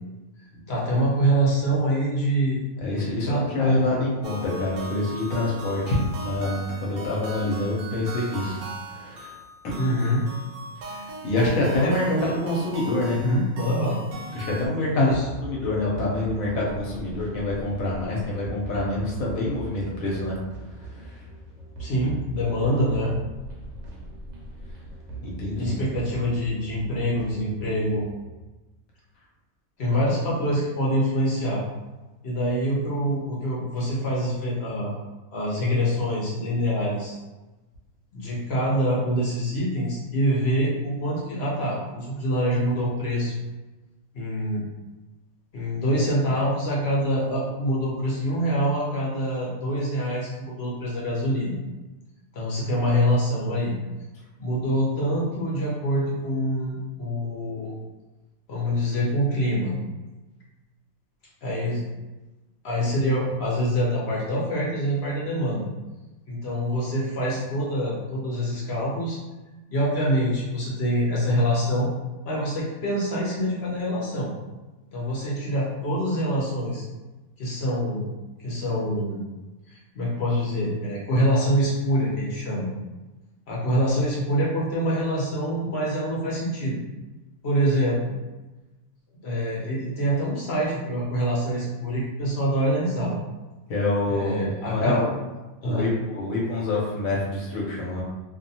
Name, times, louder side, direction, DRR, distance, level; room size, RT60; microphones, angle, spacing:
voice 1, 0.7-2.6 3.3-3.7 9.7-10.2 11.8-12.3 13.2-14.0 14.9-15.2 21.8-23.1 25.5-28.0 29.8-31.6 32.2-34.9 35.3-37.2 38.1-43.3 44.1-44.7 45.5-51.5 52.3-53.7 54.4-57.7 58.5-59.7 61.4-61.8 62.6-65.7 66.3-69.2 69.7-71.9 72.2-74.3 74.9-76.8 77.4-78.1 78.4-79.2 79.7-82.7 83.5-86.8 87.4-88.0 89.2-93.2 94.1-95.0 95.6-95.9, equal, 55° left, -5 dB, 0.8 m, -25 dB
voice 2, 2.8-9.4 10.8-13.2 14.3-20.4 20.7-21.2 25.2-25.8 93.7-95.2 95.6-98.0, left 2 dB, 75° left, -4 dB, 1.1 m, -26 dB
sound 1, 4.2-14.7, right 1 dB, 85° right, 1.1 m, -38 dB
sound 2, 15.1-28.4, right 2 dB, 65° right, 0.8 m, -40 dB
2.6 x 2.2 x 2.7 m, 1.1 s
omnidirectional pair, 1.5 m